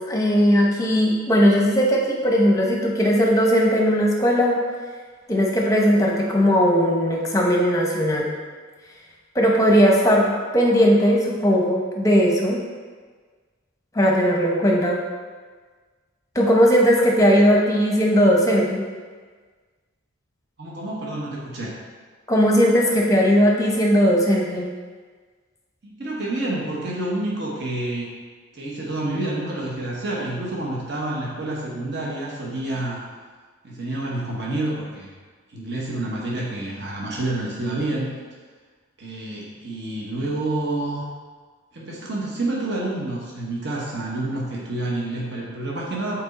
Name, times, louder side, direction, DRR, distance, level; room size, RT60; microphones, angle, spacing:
voice 1, 0.0-4.6 5.3-8.3 9.3-12.6 13.9-15.0 16.3-18.8 22.3-24.7, equal, 15° left, -1 dB, 0.8 m, -18 dB
voice 2, 20.6-21.7 25.8-28.1 28.5-33.0 33.6-35.1 35.5-38.1 39.0-41.1 41.7-46.2, right 2 dB, 55° right, -4 dB, 1.0 m, -28 dB
6.1 x 4.2 x 4.1 m, 1.5 s
head